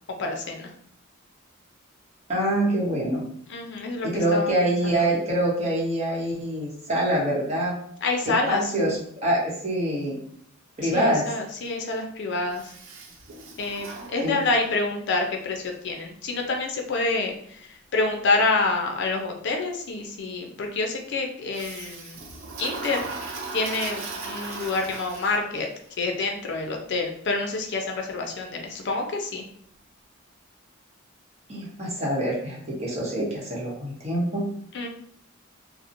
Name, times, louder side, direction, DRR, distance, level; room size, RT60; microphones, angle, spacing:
voice 1, 0.1-0.7 3.5-5.1 8.0-8.6 10.8-12.7 13.6-22.2 22.6-23.0 23.5-25.7 26.0-29.4 34.7-34.9, left 3 dB, 55° left, 2 dB, 0.4 m, -27 dB
voice 2, 2.3-3.2 4.0-7.7 8.3-10.2 10.8-11.2 14.2-14.4 31.5-34.5, right 1 dB, 30° right, -4 dB, 0.9 m, -25 dB
Toilet flush, 12.5-14.8 21.5-25.7, right 3 dB, 65° right, 0.4 m, -37 dB
2.8 x 2.0 x 2.5 m, 0.66 s
head